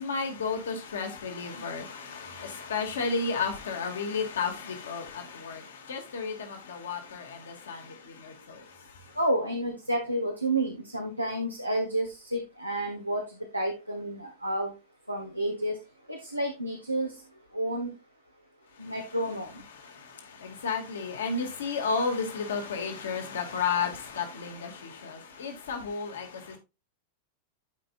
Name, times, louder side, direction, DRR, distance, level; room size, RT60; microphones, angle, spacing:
voice 1, 0.0-8.6 19.8-26.6, left 5 dB, 65° left, 2.2 m, -33 dB
voice 2, 9.2-13.2 13.5-14.7 15.1-15.7 16.1-17.1 17.5-17.9 18.8-19.5, right 1 dB, 90° right, 1.2 m, -30 dB
12.5 x 5.2 x 2.5 m
figure-of-eight pair, 90°, 0 cm